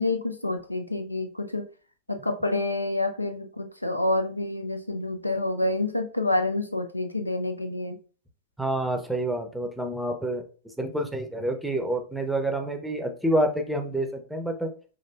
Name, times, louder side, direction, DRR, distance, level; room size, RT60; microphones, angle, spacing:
voice 1, 0.0-1.7 2.1-8.0, left 2 dB, 85° left, 7 dB, 0.4 m, -28 dB
voice 2, 8.6-10.4 10.8-14.7, right 1 dB, ahead, 4 dB, 0.6 m, -28 dB
5.5 x 2.6 x 2.3 m, 0.36 s
figure-of-eight pair, 90°, 0 cm